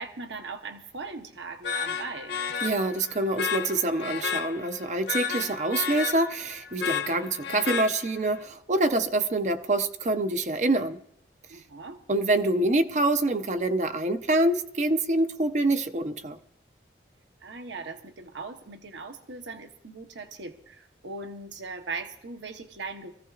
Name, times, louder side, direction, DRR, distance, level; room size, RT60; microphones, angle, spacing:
voice 1, 0.0-2.3 11.5-12.0 17.4-23.1, right 3 dB, 85° right, 1.0 m, -39 dB
sound 1, 1.6-8.4, left 6 dB, 75° left, 1.1 m, -32 dB
voice 2, 2.6-11.0 12.1-16.4, right 2 dB, 40° right, 0.5 m, -26 dB
23.5 x 15.0 x 2.4 m
head